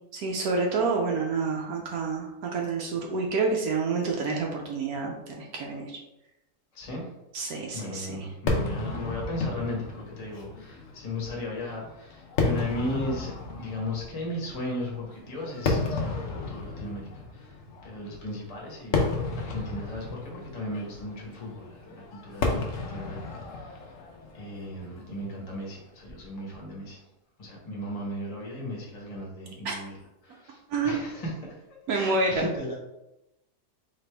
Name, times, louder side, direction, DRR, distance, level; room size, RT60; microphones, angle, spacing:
voice 1, 0.1-6.0 7.3-8.3 29.6-29.8 30.7-31.0 31.9-32.4, right 4 dB, 75° right, 0 dB, 1.1 m, -28 dB
voice 2, 6.7-7.1 7.7-17.6 17.8-19.1 19.3-23.8 24.3-27.0 27.4-29.9 30.2-31.6 31.9-32.8, left 1 dB, 25° left, -3 dB, 1.1 m, -36 dB
Fireworks, 8.5-25.8, left 3 dB, 60° left, 1.0 m, -33 dB
4.2 x 3.4 x 3.3 m, 0.91 s
omnidirectional pair, 1.7 m